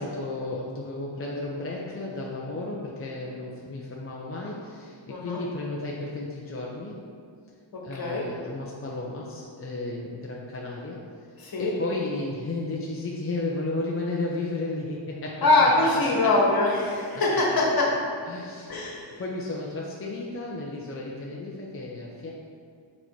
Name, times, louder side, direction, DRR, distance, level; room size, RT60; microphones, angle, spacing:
voice 1, 0.0-7.0 7.8-11.0 11.6-16.1 18.3-22.3, left 2 dB, 30° left, -3 dB, 0.6 m, -33 dB
voice 2, 5.1-5.4 7.9-8.3 11.4-11.7 15.4-17.9 18.7-19.1, left 2 dB, 50° left, -3 dB, 1.6 m, -23 dB
6.8 x 4.3 x 4.5 m, 2.2 s
wide cardioid pair, 145°, 48 cm